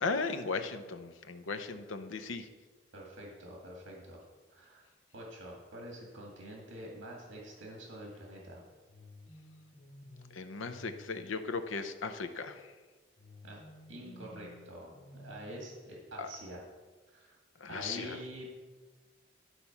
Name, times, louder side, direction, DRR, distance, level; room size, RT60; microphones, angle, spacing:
voice 1, 0.0-2.5 10.3-12.7 16.2-16.3 17.6-18.2, left 4 dB, 85° left, 9 dB, 0.7 m, -36 dB
voice 2, 2.9-4.2 4.5-4.9 5.1-8.6 13.4-13.6 13.9-16.7 17.1-17.4 17.7-18.5, right 1 dB, 80° right, -1 dB, 1.8 m, -46 dB
sound 1, 8.9-12.0 13.2-16.1, left 2 dB, 40° left, 1.0 m, -55 dB
11.5 x 4.2 x 5.8 m, 1.3 s
head